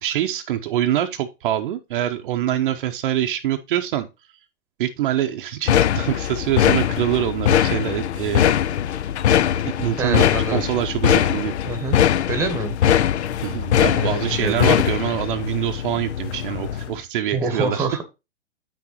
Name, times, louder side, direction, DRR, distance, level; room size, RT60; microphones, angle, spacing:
voice 1, 0.0-4.1 4.8-8.5 9.8-11.5 13.4-17.9, right 12 dB, 45° right, 0.7 m, -25 dB
sound 1, 5.7-17.0, left 10 dB, 65° left, 0.6 m, -21 dB
voice 2, 10.0-10.6 11.6-12.0 12.3-12.8 13.9-14.7 17.3-18.0, right 2 dB, 5° right, 1.1 m, -25 dB
8.3 x 6.2 x 2.9 m
hypercardioid pair, 125°, 37 cm